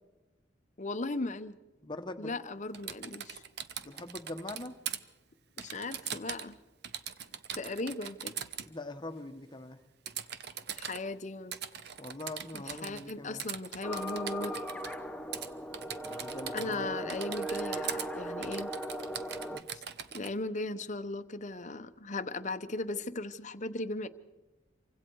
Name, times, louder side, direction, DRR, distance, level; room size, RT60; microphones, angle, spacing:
voice 1, 0.8-1.6 2.2-3.4 5.6-6.6 7.5-8.3 10.8-11.6 12.5-14.5 16.5-18.7 20.1-24.1, left 2 dB, 40° left, 11 dB, 0.9 m, -37 dB
voice 2, 1.8-2.3 3.8-4.8 8.6-9.8 12.0-13.5 16.0-17.1 19.5-19.6, left 2 dB, 25° left, 7 dB, 1.2 m, -43 dB
Typing, 2.7-5.0 5.6-6.5 6.8-8.7 10.1-11.0 11.5-13.1 13.4-15.0 15.3-15.5 15.7-16.8 17.1-18.1 18.4-20.3, right 8 dB, 60° right, 0.9 m, -41 dB
sound 1, 13.8-19.6, right 1 dB, 5° left, 0.8 m, -38 dB
27.5 x 24.5 x 4.7 m, 1.1 s
head